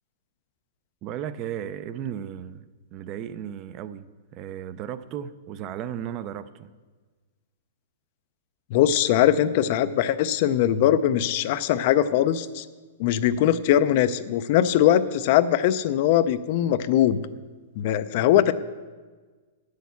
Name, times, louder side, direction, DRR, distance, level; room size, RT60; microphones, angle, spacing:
voice 1, 1.0-2.7 2.9-6.7, right 10 dB, 30° right, 0.4 m, -35 dB
voice 2, 8.7-12.7 13.0-17.2 17.8-18.5, left 11 dB, 45° left, 0.4 m, -21 dB
9.2 x 6.4 x 8.2 m
hypercardioid pair, 160°, 0 cm